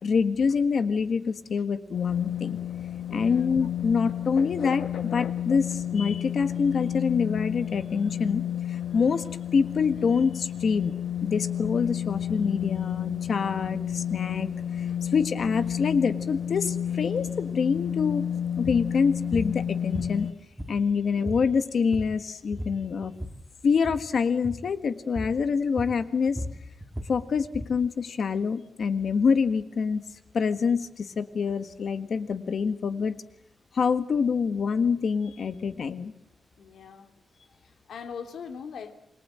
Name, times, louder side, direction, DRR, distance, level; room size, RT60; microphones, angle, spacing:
voice 1, 0.0-2.6 3.1-8.4 8.7-10.9 11.2-14.5 14.8-14.9 15.1-18.2 18.6-20.3 20.7-23.1 23.6-26.4 27.1-30.0 30.3-33.1 33.7-36.1, left 5 dB, 55° left, 1.5 m, -26 dB
sound 1, 1.9-20.3, left 9 dB, 75° left, 1.4 m, -31 dB
voice 2, 3.1-3.5 14.9-15.0 36.6-37.1 37.6-38.9, left 6 dB, 90° left, 2.8 m, -41 dB
sound 2, 18.6-18.9 19.3-19.5 19.9-20.9 21.2-21.5 21.8-22.2 22.5-23.4 23.8-24.1 24.4-24.7 25.1-25.4 25.8-27.8, equal, 5° right, 2.4 m, -36 dB
28.0 x 22.5 x 7.7 m
wide cardioid pair, 170°, 0 cm